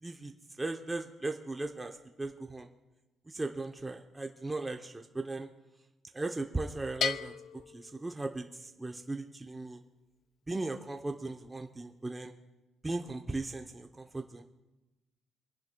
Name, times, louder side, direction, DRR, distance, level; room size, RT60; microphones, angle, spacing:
voice 1, 0.0-0.3 0.6-2.7 3.3-5.5 6.1-7.3 7.7-9.8 10.5-12.3 12.8-14.4, right 2 dB, 15° right, 3 dB, 0.7 m, -37 dB
Bell, 7.0-8.7, left 8 dB, 60° left, 0.4 m, -37 dB
27.0 x 10.5 x 2.2 m, 1.1 s
cardioid pair, 110°, 0 cm